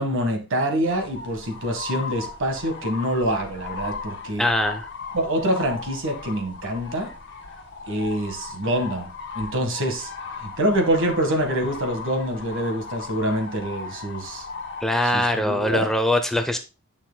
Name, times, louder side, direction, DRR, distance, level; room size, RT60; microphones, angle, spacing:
voice 1, 0.0-4.4 5.1-7.1 7.9-9.1 9.3-10.1 10.4-14.5 15.1-15.9, right 1 dB, 65° right, 1.5 m, -25 dB
sound 1, 0.9-14.8, left 4 dB, 55° left, 1.8 m, -37 dB
voice 2, 4.4-4.9 14.8-16.6, left 1 dB, ahead, 0.5 m, -22 dB
9.5 x 5.9 x 2.2 m
head